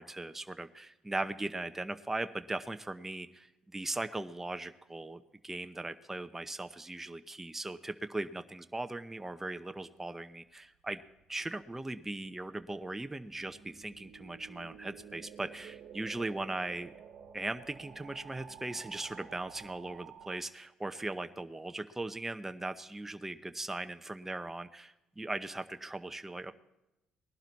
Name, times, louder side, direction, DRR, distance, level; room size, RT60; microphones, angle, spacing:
voice 1, 0.0-11.0 11.3-16.9 17.3-26.5, right 2 dB, 15° right, 9 dB, 0.8 m, -39 dB
sound 1, 11.1-20.4, right 8 dB, 70° right, 1.3 m, -52 dB
19.5 x 11.5 x 4.1 m, 0.94 s
supercardioid pair, 60°, 2 cm